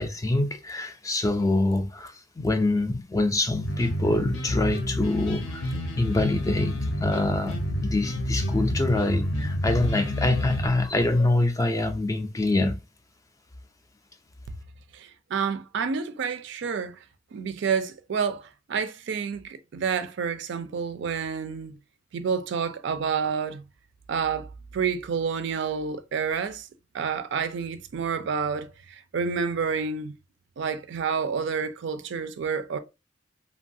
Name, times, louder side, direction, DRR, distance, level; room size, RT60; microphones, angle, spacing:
voice 1, 0.0-5.7 6.0-12.8, left 2 dB, 15° left, 0.3 m, -25 dB
sound 1, 3.6-10.7, left 1 dB, 85° left, 0.7 m, -29 dB
voice 2, 14.9-17.0 17.3-21.7 22.1-23.6 24.1-24.5 24.7-26.7 26.9-30.1 30.6-32.8, right 6 dB, 65° right, 0.3 m, -29 dB
3.1 x 2.3 x 2.6 m
head